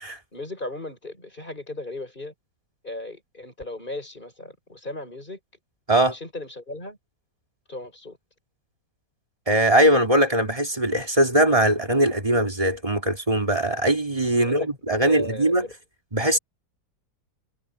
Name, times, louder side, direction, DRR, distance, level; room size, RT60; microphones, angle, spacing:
voice 1, 0.3-2.3 2.8-5.4 6.1-7.0 7.7-8.2 14.4-14.7 15.0-15.7, left 2 dB, 25° left, 7.6 m, -36 dB
voice 2, 9.5-15.7 16.1-16.4, right 1 dB, 20° right, 2.8 m, -21 dB
omnidirectional pair, 2.0 m